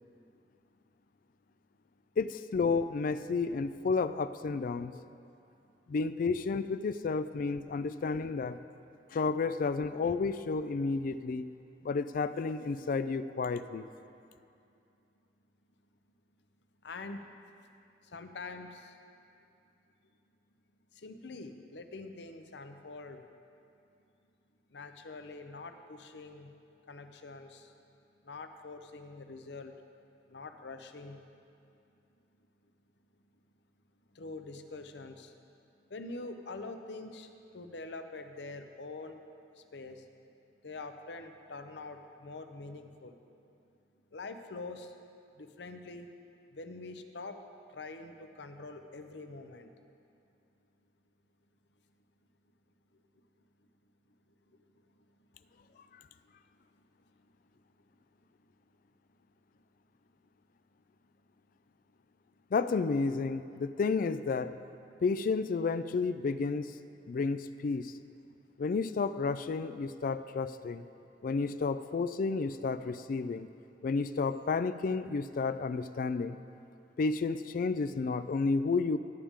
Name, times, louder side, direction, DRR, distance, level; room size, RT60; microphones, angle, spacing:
voice 1, 2.2-4.9 5.9-8.6 9.1-11.5 11.8-13.9 62.5-64.5 65.0-66.7 67.1-67.9 68.6-70.8 71.2-73.5 73.8-76.4 77.0-79.0, left 4 dB, 50° left, 13 dB, 0.3 m, -31 dB
voice 2, 16.8-17.3 18.0-19.0 20.9-23.2 24.7-26.5 26.9-27.7 28.2-29.7 30.3-31.2 34.1-35.4 35.9-39.2 39.5-40.1 40.6-43.2 44.1-45.0 45.4-46.1 46.5-49.7 54.5-54.6 55.7-55.8, left 3 dB, 75° left, 7 dB, 0.7 m, -45 dB
18.0 x 8.7 x 3.6 m, 2.6 s
head